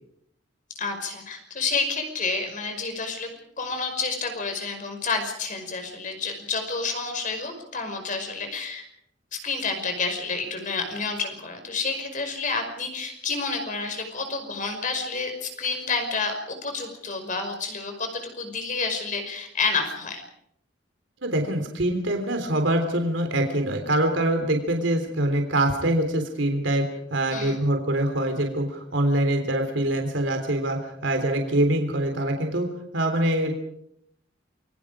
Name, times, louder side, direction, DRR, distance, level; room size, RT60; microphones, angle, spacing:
voice 1, 0.8-3.3 3.6-8.8 9.3-20.2 27.3-27.6, left 4 dB, 45° left, 5 dB, 5.5 m, -29 dB
voice 2, 21.2-26.9 27.1-32.7 32.9-33.5, right 1 dB, 75° right, 4 dB, 3.6 m, -24 dB
28.5 x 22.5 x 5.0 m, 0.75 s
head